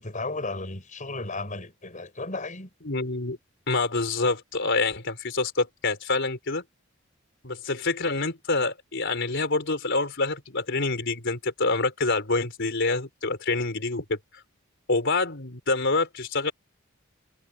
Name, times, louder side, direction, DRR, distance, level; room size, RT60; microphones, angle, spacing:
voice 1, 0.0-2.7, left 2 dB, 40° left, 5.9 m, -34 dB
voice 2, 2.9-3.4 3.7-6.6 7.4-14.4 14.9-16.5, left 3 dB, 60° left, 4.1 m, -26 dB
head